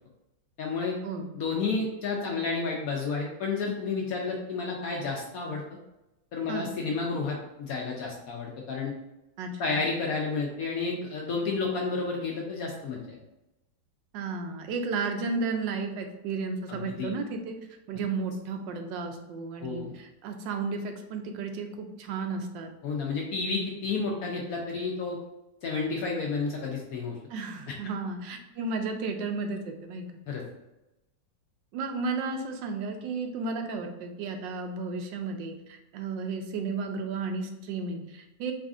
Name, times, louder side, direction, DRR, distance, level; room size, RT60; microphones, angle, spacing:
voice 1, 0.6-1.0 1.3-5.6 6.3-8.9 9.6-13.2 16.7-17.1 19.6-20.0 22.8-25.2 25.6-27.2 30.3-30.4, left 4 dB, 70° left, -1 dB, 0.9 m, -31 dB
voice 2, 9.4-9.8 14.1-17.5 17.9-22.7 27.3-30.1 31.7-38.5, right 4 dB, 90° right, 4 dB, 1.3 m, -33 dB
4.1 x 2.5 x 3.6 m, 0.94 s
omnidirectional pair, 1.9 m